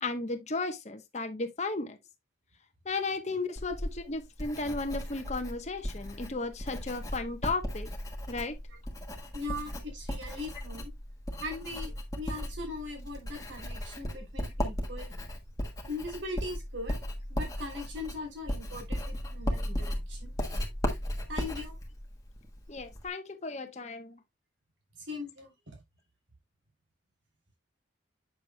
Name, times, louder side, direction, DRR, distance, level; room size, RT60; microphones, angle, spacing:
voice 1, 0.0-2.0 2.8-7.9 8.3-8.6 22.7-24.2, left 3 dB, 35° left, 1.0 m, -34 dB
Writing, 3.6-23.1, equal, 20° left, 1.3 m, -36 dB
voice 2, 9.3-10.9 11.4-15.1 15.9-16.9 17.3-20.3 21.3-21.8 25.1-25.8, left 2 dB, 75° right, 3.2 m, -40 dB
7.8 x 6.7 x 2.2 m
head